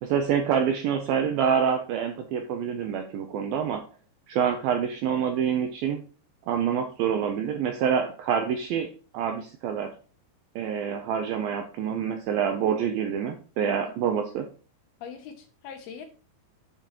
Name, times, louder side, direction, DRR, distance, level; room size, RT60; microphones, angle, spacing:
voice 1, 0.0-3.8 4.3-6.0 6.5-8.9 9.1-9.9 10.6-14.5, right 7 dB, 85° right, 5 dB, 2.1 m, -26 dB
voice 2, 15.0-16.1, left 7 dB, 75° left, 6 dB, 2.5 m, -41 dB
8.6 x 7.6 x 3.0 m, 0.38 s
omnidirectional pair, 5.1 m